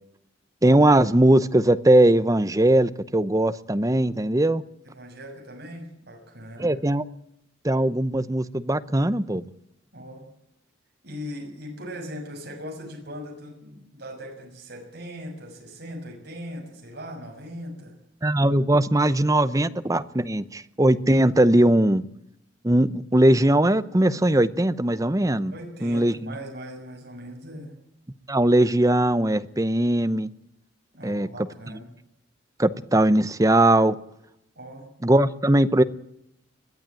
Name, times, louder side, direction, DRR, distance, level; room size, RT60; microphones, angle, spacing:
voice 1, 0.6-4.6 6.6-7.0 7.6-9.4 18.2-22.0 22.6-25.5 25.8-26.3 28.3-30.3 31.0-31.3 32.6-34.0 35.0-35.8, right 1 dB, 15° right, 14 dB, 0.8 m, -20 dB
voice 2, 4.8-6.8 9.9-10.2 11.0-18.0 25.5-27.7 30.9-31.9 34.5-34.9, equal, 55° right, 1 dB, 6.7 m, -39 dB
21.5 x 13.5 x 9.1 m, 0.81 s
head